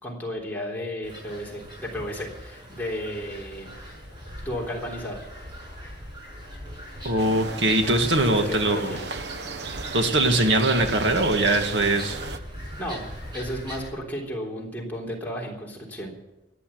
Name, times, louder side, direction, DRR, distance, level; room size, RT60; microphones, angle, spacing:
voice 1, 0.0-3.7 4.5-5.2 8.1-9.1 12.8-16.1, equal, 10° left, -3 dB, 3.5 m, -33 dB
sound 1, 1.0-13.9, equal, 25° right, 5.7 m, -40 dB
voice 2, 7.0-8.9 9.9-12.2, right 2 dB, 80° right, 5 dB, 2.0 m, -22 dB
sound 2, 7.2-12.4, right 5 dB, 65° right, 0.8 m, -35 dB
14.5 x 10.0 x 8.6 m, 0.97 s
head